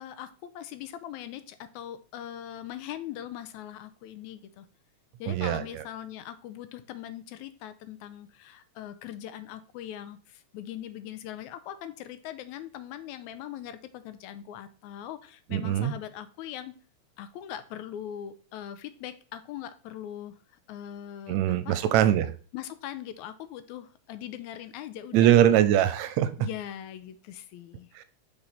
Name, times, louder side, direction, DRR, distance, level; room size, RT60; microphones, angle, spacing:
voice 1, 0.0-4.7 5.2-16.7 17.2-20.4 20.7-21.8 22.5-25.6 26.4-27.9, left 11 dB, 85° left, 12 dB, 2.0 m, -41 dB
voice 2, 5.3-5.8 15.5-16.0 21.3-22.3 25.1-26.3 28.0-28.1, right 11 dB, 80° right, 11 dB, 1.8 m, -22 dB
5.7 x 5.3 x 4.1 m, 0.39 s
omnidirectional pair, 3.4 m